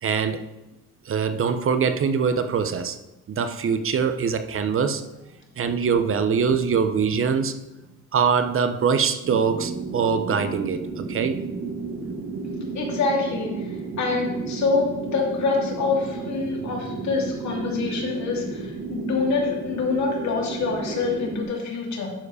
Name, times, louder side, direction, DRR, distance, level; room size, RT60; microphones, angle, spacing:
voice 1, 0.0-0.4 1.0-3.0 3.3-5.0 5.6-7.5 8.1-11.4, right 6 dB, 45° right, 9 dB, 0.8 m, -23 dB
sound 1, 9.2-21.4, right 4 dB, 70° right, 1.8 m, -33 dB
voice 2, 12.7-22.1, left 4 dB, 65° left, -2 dB, 2.9 m, -26 dB
11.5 x 4.9 x 4.9 m, 1.0 s
cardioid pair, 90°, 30 cm